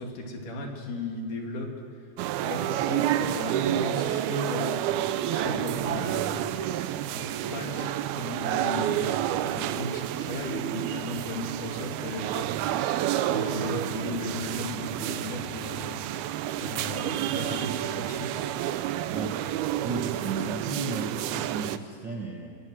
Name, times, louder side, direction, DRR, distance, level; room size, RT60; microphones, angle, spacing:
voice 1, 0.0-1.7 2.4-6.4 7.1-12.9 13.3-16.0 16.6-18.4, left 2 dB, 60° left, 1 dB, 4.0 m, -36 dB
sound 1, 2.2-21.8, right 12 dB, 80° right, 2.6 m, -29 dB
voice 2, 19.8-22.6, right 3 dB, 50° right, 2 dB, 1.4 m, -34 dB
28.0 x 23.5 x 6.4 m, 2.3 s
omnidirectional pair, 4.4 m